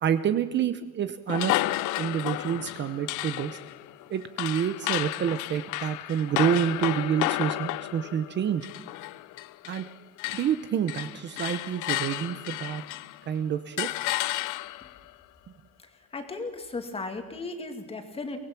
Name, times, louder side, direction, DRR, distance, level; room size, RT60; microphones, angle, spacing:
voice 1, 0.0-1.6 2.0-3.6 4.1-8.7 9.7-9.8 10.3-12.8 13.3-13.9, right 8 dB, 35° right, 11 dB, 0.8 m, -28 dB
sound 1, 1.3-9.9 10.2-13.2 13.8-15.0, left 17 dB, 80° left, 0.7 m, -32 dB
voice 2, 16.1-18.4, left 3 dB, 20° left, 5 dB, 2.2 m, -35 dB
24.0 x 19.0 x 6.0 m, 1.3 s
cardioid pair, 165°, 30 cm